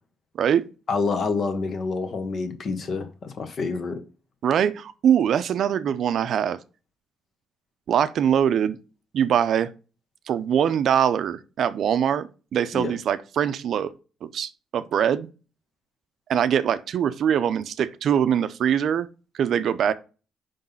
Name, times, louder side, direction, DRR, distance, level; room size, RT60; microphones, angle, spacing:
voice 1, 0.9-4.0 12.7-12.9, left 4 dB, 55° left, 1.2 m, -27 dB
voice 2, 4.4-6.6 7.9-8.8 9.1-9.7 10.3-13.9 14.2-15.3 16.3-19.1 19.3-19.9, right 9 dB, 65° right, 0.5 m, -23 dB
5.3 x 3.9 x 5.5 m
cardioid pair, 90°, 0 cm